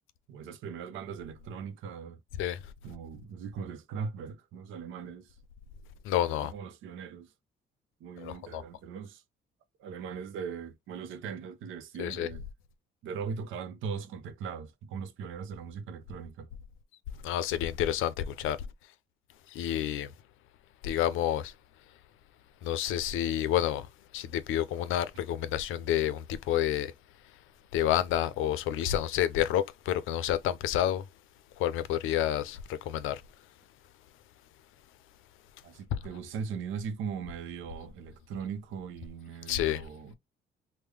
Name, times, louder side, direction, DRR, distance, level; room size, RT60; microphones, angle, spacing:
voice 1, 0.3-2.2 2.8-5.4 6.3-7.3 8.0-9.2 9.8-12.5 13.0-16.5 35.6-40.1, right 6 dB, 90° right, 0.6 m, -39 dB
voice 2, 6.0-6.5 8.2-8.6 12.0-12.3 17.2-18.6 19.5-20.1 20.8-21.5 22.6-23.9 24.1-26.9 27.7-31.0 31.6-33.2 35.9-36.0 39.5-39.8, left 11 dB, 90° left, 0.5 m, -29 dB
3.6 x 2.1 x 3.2 m
cardioid pair, 90°, 20 cm